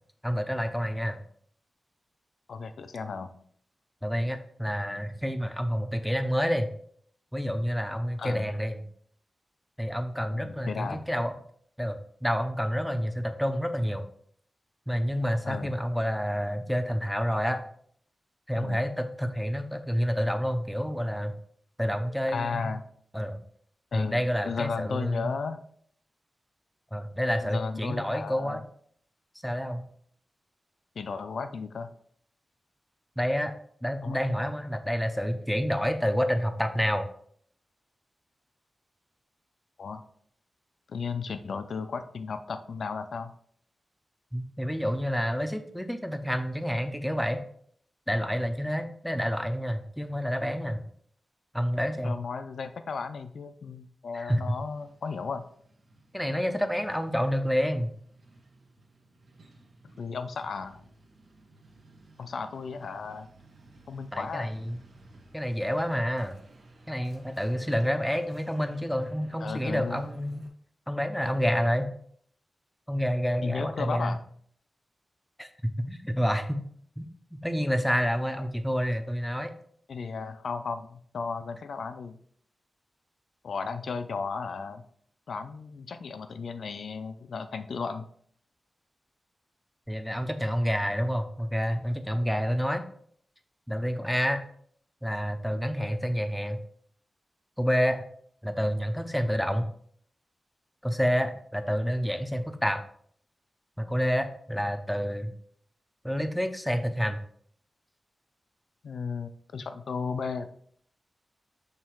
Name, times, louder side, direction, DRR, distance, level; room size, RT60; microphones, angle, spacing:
voice 1, 0.2-1.2 4.0-6.7 7.3-8.8 9.8-11.3 11.8-14.0 14.9-17.6 18.5-21.4 21.8-22.7 23.1-23.4 23.9-25.3 26.9-28.6 29.4-29.8 33.2-33.5 33.8-37.1 44.3-47.4 48.1-50.8 51.5-52.2 54.1-54.6 56.1-57.9 64.1-64.8 65.3-66.4 66.9-70.4 70.9-71.9 72.9-74.2 75.4-76.6 77.0-79.5 89.9-92.8 93.7-94.4 95.0-96.6 97.6-98.0 98.4-99.7 100.8-102.8 103.8-105.3 106.0-107.2, equal, 5° left, 7 dB, 0.6 m, -28 dB
voice 2, 2.5-3.3 8.2-8.5 10.3-11.0 15.5-15.7 18.6-18.8 22.3-22.8 23.9-25.6 27.4-28.6 31.0-31.9 34.0-34.2 39.8-40.0 40.9-43.3 52.0-55.4 60.0-60.8 62.2-63.3 63.9-64.5 69.4-70.0 73.4-74.2 79.9-82.2 83.4-84.8 85.3-88.1 108.8-110.5, left 5 dB, 75° left, 9 dB, 0.5 m, -34 dB
Truck, 54.3-70.5, right 2 dB, 80° right, 1.3 m, -56 dB
6.6 x 3.3 x 4.5 m, 0.62 s
wide cardioid pair, 150°, 0 cm